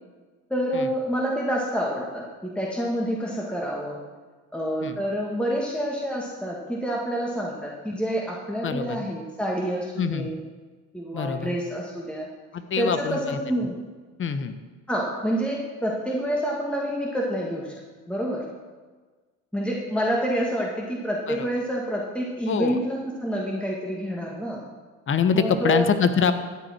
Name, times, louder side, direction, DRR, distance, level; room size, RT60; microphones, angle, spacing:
voice 1, 0.5-4.0 4.5-10.4 10.9-12.3 12.8-13.8 14.9-17.7 18.1-18.5 19.5-24.6 25.3-25.9, equal, 5° left, -3 dB, 1.9 m, -28 dB
voice 2, 8.6-9.0 10.0-10.3 11.1-11.5 12.5-13.4 14.2-14.6 21.3-21.5 22.5-22.8 25.1-26.3, left 6 dB, 40° left, 10 dB, 1.1 m, -24 dB
13.5 x 9.0 x 4.5 m, 1.4 s
supercardioid pair, 85°, 33 cm